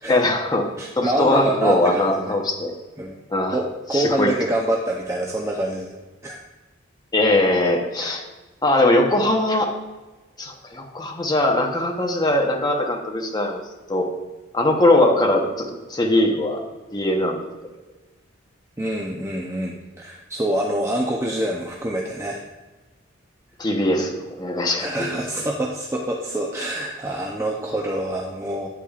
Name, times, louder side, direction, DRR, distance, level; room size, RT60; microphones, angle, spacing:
voice 1, 0.1-0.7 1.0-2.7 3.3-3.6 3.9-4.3 7.1-8.2 8.6-9.7 10.4-13.6 13.9-14.1 14.5-16.6 16.9-17.4 23.6-25.1, left 1 dB, 20° left, 1 dB, 0.9 m, -20 dB
voice 2, 0.8-2.3 3.0-3.2 3.5-6.4 8.0-8.1 18.8-22.4 24.8-28.7, right 1 dB, 15° right, -1 dB, 0.6 m, -26 dB
8.5 x 8.3 x 2.4 m, 1.2 s
head